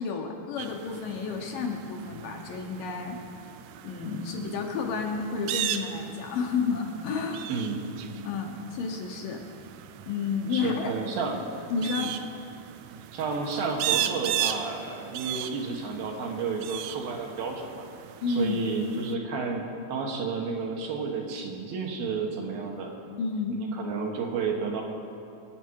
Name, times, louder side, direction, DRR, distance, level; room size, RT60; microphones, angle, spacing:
voice 1, 0.0-3.2 3.8-7.5 8.2-9.4 10.1-10.9 11.7-12.1 18.2-18.6 23.2-23.6, left 5 dB, 70° left, 2 dB, 2.5 m, -31 dB
sound 1, 0.6-19.1, right 11 dB, 85° right, 1.9 m, -37 dB
voice 2, 7.5-7.9 10.5-11.4 12.0-12.1 13.1-17.8 18.3-22.9 23.7-24.8, right 4 dB, 70° right, 1 dB, 3.1 m, -31 dB
23.5 x 9.0 x 4.7 m, 2.6 s
omnidirectional pair, 4.5 m